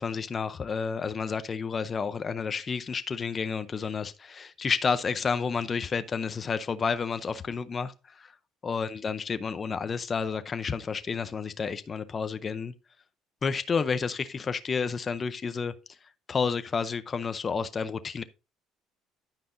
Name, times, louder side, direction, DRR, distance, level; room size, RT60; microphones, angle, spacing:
voice 1, 0.0-8.3 8.6-12.7 13.4-15.7 16.3-18.2, left 5 dB, 20° left, 0.6 m, -30 dB
10.5 x 9.4 x 2.6 m
cardioid pair, 175°, 0 cm